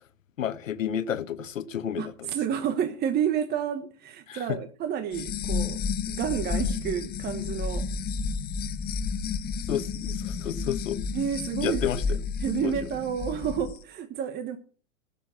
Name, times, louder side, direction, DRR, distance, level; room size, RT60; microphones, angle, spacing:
voice 1, 0.4-2.3 4.3-4.6 9.7-11.0 11.6-12.0 12.6-12.7, left 9 dB, 85° left, 1.1 m, -31 dB
voice 2, 2.0-7.9 11.1-11.9 12.4-14.6, right 9 dB, 25° right, 1.2 m, -30 dB
sound 1, 5.1-13.7, left 5 dB, 25° left, 1.2 m, -31 dB
12.0 x 7.2 x 7.6 m
hypercardioid pair, 120°, 38 cm